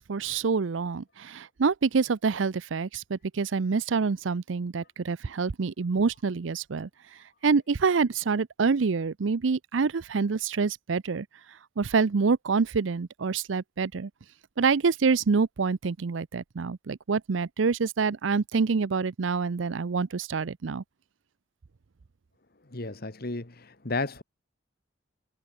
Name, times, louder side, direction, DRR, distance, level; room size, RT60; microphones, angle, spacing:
voice 1, 0.0-6.9 7.4-11.3 11.8-14.1 14.6-20.8, right 5 dB, 80° right, 0.6 m, -26 dB
voice 2, 22.7-24.2, left 3 dB, 55° left, 1.7 m, -33 dB
head